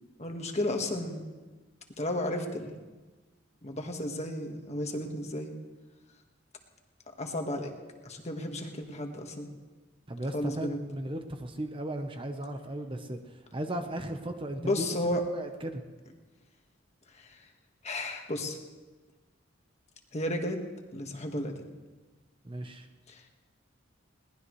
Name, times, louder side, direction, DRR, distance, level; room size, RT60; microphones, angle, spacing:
voice 1, 0.2-1.2 2.0-2.8 3.6-5.5 7.2-7.7 8.0-9.5 10.3-10.8 14.6-15.2 17.2-17.4 17.8-18.6 20.1-20.6 20.9-21.6 23.1-23.2, left 1 dB, 35° left, 3 dB, 1.6 m, -33 dB
voice 2, 10.1-15.8 22.4-22.9, right 1 dB, 25° right, 5 dB, 1.0 m, -36 dB
21.5 x 18.5 x 3.2 m, 1.3 s
head